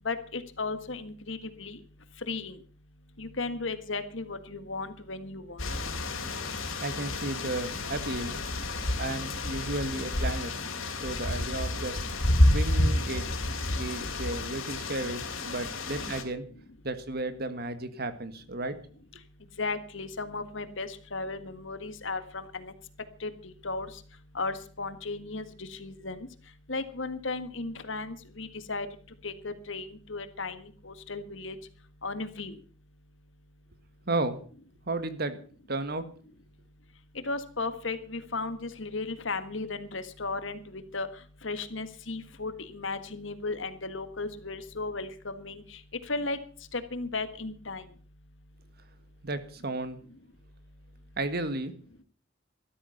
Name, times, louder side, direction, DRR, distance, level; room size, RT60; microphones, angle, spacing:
voice 1, 0.0-1.8 2.3-2.6 3.2-5.6 19.6-22.7 23.2-23.9 24.3-26.3 26.7-28.9 29.2-31.6 32.0-32.6 37.2-41.1 41.4-45.8 46.1-46.4 46.7-47.8, left 3 dB, 65° left, 11 dB, 1.7 m, -35 dB
sound 1, 5.6-16.2, left 1 dB, 90° left, 3.3 m, -29 dB
voice 2, 6.8-8.3 9.0-10.6 10.9-12.0 12.5-13.3 13.7-16.4 16.8-18.8 34.1-34.4 34.9-35.4 35.7-36.1 49.2-50.0 51.2-51.7, right 2 dB, 50° right, 11 dB, 1.7 m, -33 dB
13.5 x 13.0 x 5.7 m, 0.43 s
head